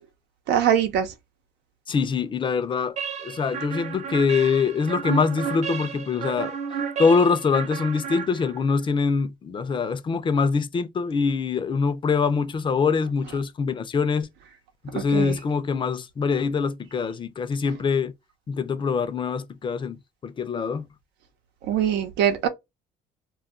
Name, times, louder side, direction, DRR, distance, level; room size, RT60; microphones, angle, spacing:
voice 1, 0.5-1.1 14.9-15.4 21.6-22.5, right 9 dB, 85° right, 0.8 m, -22 dB
voice 2, 1.9-3.0 3.2-6.5 7.0-14.3 14.9-18.1 18.5-20.9, left 5 dB, 30° left, 0.5 m, -24 dB
sound 1, 3.0-8.8, right 7 dB, 45° right, 0.6 m, -32 dB
2.3 x 2.3 x 3.6 m
cardioid pair, 110°, 17 cm